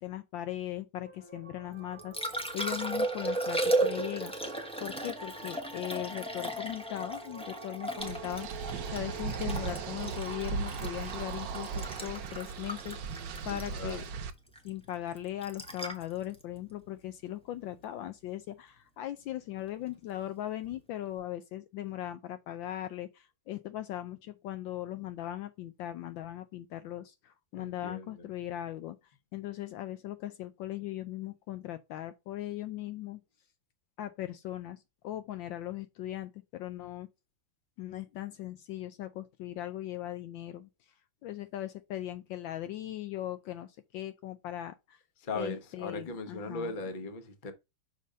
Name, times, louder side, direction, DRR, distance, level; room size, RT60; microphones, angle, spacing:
voice 1, 0.0-2.2 2.5-14.0 14.6-33.2 34.0-37.1 37.8-40.9 41.2-45.0 45.3-46.7, left 13 dB, 75° left, 1.2 m, -39 dB
sound 1, 1.0-12.8, right 3 dB, 15° right, 1.1 m, -48 dB
Liquid, 1.7-17.8 20.6-20.8, right 2 dB, 5° left, 0.7 m, -36 dB
sound 2, 8.0-14.3, right 6 dB, 65° right, 1.3 m, -37 dB
voice 2, 13.5-14.0 27.5-28.3 45.2-47.5, left 3 dB, 35° left, 0.9 m, -38 dB
6.5 x 3.5 x 5.3 m
omnidirectional pair, 2.3 m